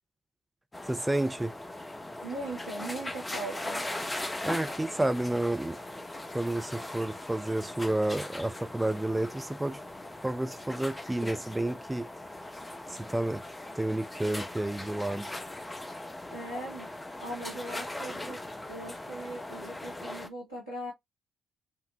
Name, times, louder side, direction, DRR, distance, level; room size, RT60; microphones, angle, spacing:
sound 1, 0.7-20.3, left 1 dB, 15° left, 1.0 m, -40 dB
voice 1, 0.9-1.5 4.4-5.8 6.3-9.8 10.2-12.0 12.9-13.4 13.8-15.3, right 1 dB, 10° right, 0.6 m, -30 dB
voice 2, 2.2-3.8 16.3-16.9 17.2-20.9, right 1 dB, 90° right, 1.4 m, -39 dB
4.7 x 3.6 x 2.7 m
figure-of-eight pair, 45°, 0 cm